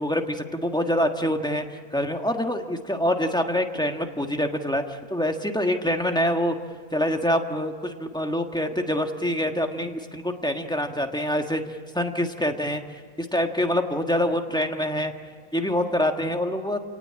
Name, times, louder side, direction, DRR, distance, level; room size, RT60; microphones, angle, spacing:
voice 1, 0.0-6.5 6.9-15.1 15.5-16.8, equal, 5° left, 4 dB, 1.4 m, -26 dB
29.0 x 18.5 x 8.7 m, 2.1 s
omnidirectional pair, 1.5 m